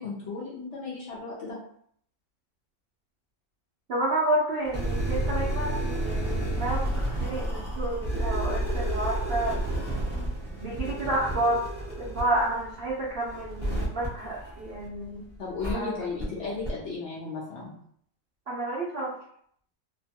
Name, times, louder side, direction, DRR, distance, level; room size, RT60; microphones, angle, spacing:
voice 1, 0.0-1.6 15.4-17.7, left 4 dB, 60° left, -6 dB, 0.8 m, -35 dB
voice 2, 3.9-9.6 10.6-11.6 11.9-15.2 15.7-16.0 18.5-19.1, right 1 dB, 80° right, -6 dB, 0.5 m, -30 dB
sound 1, 4.6-15.0 15.6-15.7 16.2-16.3 16.6-16.7, right 1 dB, 5° right, 1.0 m, -31 dB
2.9 x 2.2 x 2.8 m, 0.64 s
omnidirectional pair, 1.9 m